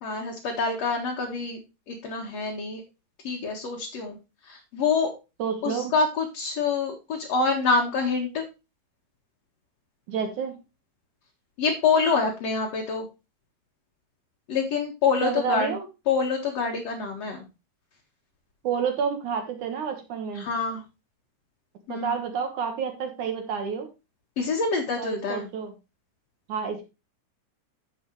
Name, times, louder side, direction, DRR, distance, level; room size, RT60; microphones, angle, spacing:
voice 1, 0.0-1.6 1.9-2.8 3.2-4.2 4.5-5.1 5.6-8.4 11.6-13.1 14.5-15.8 16.1-17.4 20.4-20.8 21.9-22.1 24.4-25.5, left 4 dB, 55° left, -1 dB, 2.5 m, -26 dB
voice 2, 5.4-5.9 10.1-10.5 15.2-15.9 18.6-20.5 21.9-23.9 25.0-25.7 26.5-26.8, right 7 dB, 65° right, 5 dB, 2.7 m, -29 dB
9.9 x 7.8 x 3.1 m, 0.27 s
omnidirectional pair, 4.1 m